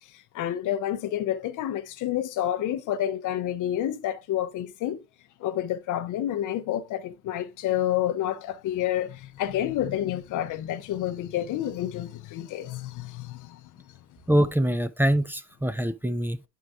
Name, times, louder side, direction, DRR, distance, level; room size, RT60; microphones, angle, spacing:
voice 1, 0.3-5.0 5.4-13.6, left 12 dB, 85° left, 0.7 m, -29 dB
voice 2, 14.3-16.4, right 1 dB, 5° right, 0.6 m, -24 dB
10.0 x 4.6 x 2.4 m
cardioid pair, 90°, 30 cm